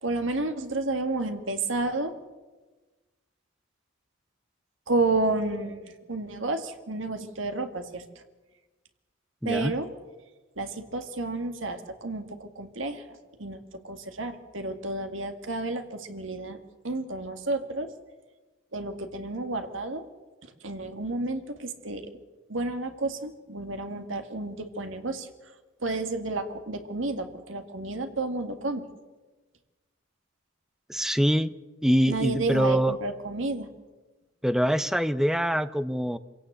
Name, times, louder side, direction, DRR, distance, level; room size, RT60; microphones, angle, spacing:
voice 1, 0.0-2.1 4.9-5.8 6.1-8.0 9.5-9.9 10.6-13.0 13.4-13.6 13.8-16.6 16.8-17.9 18.7-20.0 20.6-22.1 22.5-25.3 25.8-28.9 32.1-33.7, right 2 dB, 70° right, 7 dB, 2.1 m, -31 dB
voice 2, 9.4-9.7 30.9-31.5 31.8-32.9 34.4-36.2, equal, ahead, 13 dB, 0.7 m, -24 dB
26.0 x 17.0 x 8.1 m, 1.2 s
head